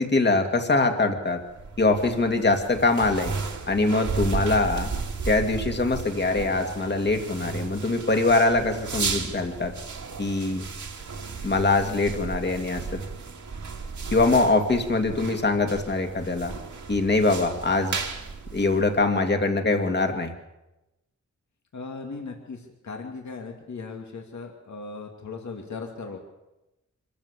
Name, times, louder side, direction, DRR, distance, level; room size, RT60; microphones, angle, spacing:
voice 1, 0.0-1.4 1.8-3.3 3.7-4.9 5.3-9.7 10.2-10.6 11.4-13.0 14.1-16.5 16.9-18.0 18.5-20.3, left 3 dB, 35° left, 5 dB, 2.4 m, -23 dB
sound 1, 1.4-19.3, right 4 dB, 70° right, 2.8 m, -34 dB
voice 2, 21.7-26.2, left 4 dB, 70° left, 2 dB, 2.6 m, -38 dB
25.5 x 14.5 x 8.2 m, 0.97 s
wide cardioid pair, 145°, 30 cm